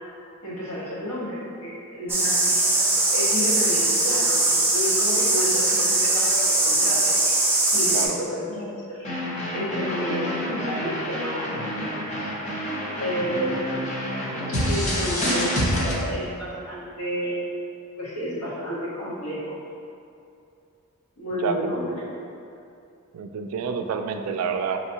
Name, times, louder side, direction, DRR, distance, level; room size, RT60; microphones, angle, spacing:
voice 1, 0.4-2.8 3.1-7.4 7.7-9.1 9.5-12.5 13.0-13.8 14.5-17.5 18.0-19.6 21.2-22.0, equal, 85° left, -8 dB, 1.3 m, -31 dB
sound 1, 2.1-8.1, right 2 dB, 10° right, 0.6 m, -21 dB
sound 2, 9.0-15.9, equal, 30° left, 0.7 m, -28 dB
voice 2, 21.4-21.7 23.1-24.8, right 6 dB, 70° right, 6 dB, 0.3 m, -28 dB
5.4 x 2.9 x 2.8 m, 2.6 s
head